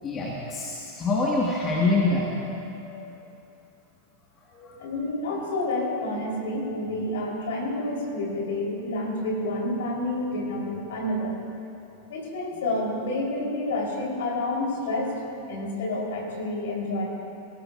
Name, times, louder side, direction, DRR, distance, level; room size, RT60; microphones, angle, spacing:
voice 1, 0.0-3.1 4.5-4.8, left 2 dB, 25° left, -3 dB, 1.7 m, -26 dB
voice 2, 4.8-11.4 12.1-15.1 15.5-17.0, left 1 dB, 60° left, -2 dB, 3.6 m, -29 dB
20.0 x 18.0 x 2.5 m, 2.8 s
figure-of-eight pair, 90°, 0 cm